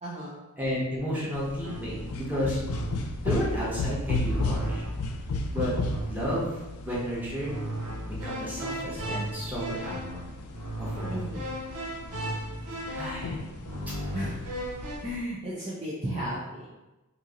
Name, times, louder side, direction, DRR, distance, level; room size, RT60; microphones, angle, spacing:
voice 1, 0.0-0.4 11.1-11.7 14.1-14.4 15.0-16.7, equal, 30° right, -7 dB, 0.5 m, -34 dB
voice 2, 0.6-2.6 3.2-4.8 5.5-5.7 6.0-7.5 8.0-10.2 10.8-11.2 12.9-13.4, equal, 10° right, -7 dB, 1.0 m, -32 dB
sound 1, 1.3-15.2, left 2 dB, 75° left, 0.4 m, -35 dB
sound 2, 1.6-2.1 2.6-3.2 4.2-5.2 5.8-6.4 7.4-15.0, right 1 dB, 85° right, 0.8 m, -36 dB
3.0 x 2.7 x 3.7 m, 1.0 s
head